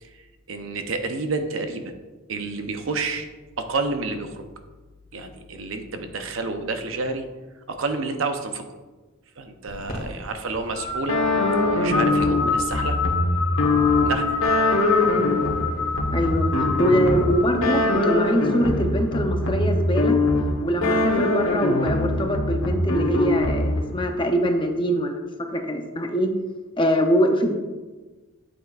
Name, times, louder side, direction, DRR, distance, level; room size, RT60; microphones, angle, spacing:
voice 1, 0.0-1.9 2.3-3.3 3.6-4.5 5.1-7.3 7.7-8.6 9.4-11.2 11.7-13.0 14.0-14.4, right 3 dB, 65° right, 7 dB, 0.7 m, -29 dB
sound 1, 9.7-18.1, left 5 dB, 40° left, 2.0 m, -28 dB
sound 2, 11.1-24.0, left 2 dB, 80° left, 1.2 m, -23 dB
voice 2, 16.1-20.2 20.6-26.3 26.8-27.6, equal, 25° left, 4 dB, 0.6 m, -23 dB
8.9 x 7.9 x 2.4 m, 1.3 s
head